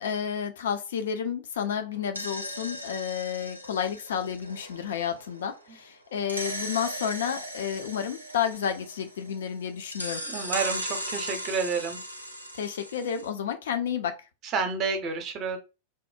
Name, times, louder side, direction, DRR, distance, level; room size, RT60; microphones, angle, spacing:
voice 1, 0.0-10.2 12.5-14.2, left 8 dB, 60° left, 0.4 m, -31 dB
sound 1, 1.9-5.6 6.3-9.5 9.9-13.3, equal, 85° right, 0.4 m, -37 dB
voice 2, 10.2-12.0 14.5-15.6, right 5 dB, 35° right, 0.6 m, -29 dB
2.6 x 2.0 x 2.4 m
figure-of-eight pair, 90°, 0 cm